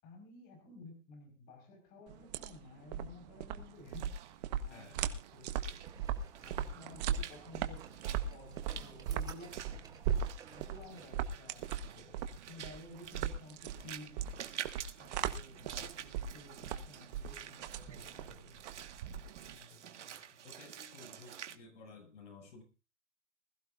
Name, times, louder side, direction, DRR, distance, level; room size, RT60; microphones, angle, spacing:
voice 1, 0.0-4.3 4.6-5.9 6.4-7.8 8.3-10.0 10.5-14.2 15.0-18.6 19.4-20.4, left 2 dB, 25° left, 5.2 m, -54 dB
sound 1, 2.1-19.5, right 8 dB, 35° right, 1.3 m, -39 dB
Walk footsteps / Splash splatter, 3.7-21.6, right 9 dB, 70° right, 1.8 m, -50 dB
sound 2, 5.8-11.0, right 6 dB, 10° right, 1.5 m, -56 dB
voice 2, 20.4-22.6, left 3 dB, 75° left, 7.1 m, -54 dB
20.5 x 15.0 x 2.6 m
hypercardioid pair, 155°, 36 cm